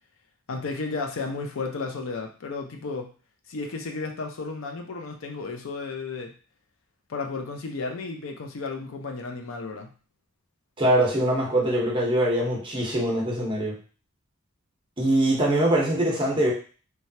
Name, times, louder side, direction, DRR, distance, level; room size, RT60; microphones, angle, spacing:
voice 1, 0.5-3.1 3.5-6.3 7.1-9.9, left 3 dB, 80° left, 3 dB, 0.5 m, -33 dB
voice 2, 10.8-13.8 15.0-16.5, right 1 dB, 25° right, -3 dB, 0.8 m, -23 dB
3.2 x 2.2 x 2.7 m, 0.38 s
head